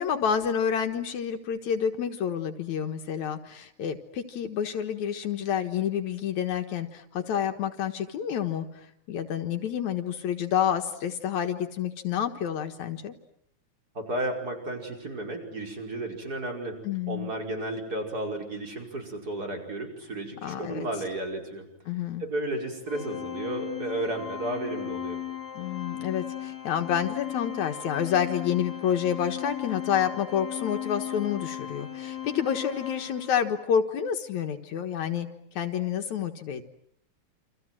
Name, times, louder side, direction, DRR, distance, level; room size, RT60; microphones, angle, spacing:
voice 1, 0.0-13.1 16.8-17.3 20.4-20.9 21.9-22.2 25.6-35.3 35.6-36.6, left 8 dB, 75° left, 5 dB, 2.7 m, -29 dB
voice 2, 13.9-16.8 17.1-21.7 22.2-25.2, right 1 dB, 30° right, 2 dB, 5.7 m, -33 dB
Organ, 22.9-33.6, left 11 dB, 35° left, 2.4 m, -37 dB
29.0 x 27.0 x 7.7 m, 0.71 s
omnidirectional pair, 3.3 m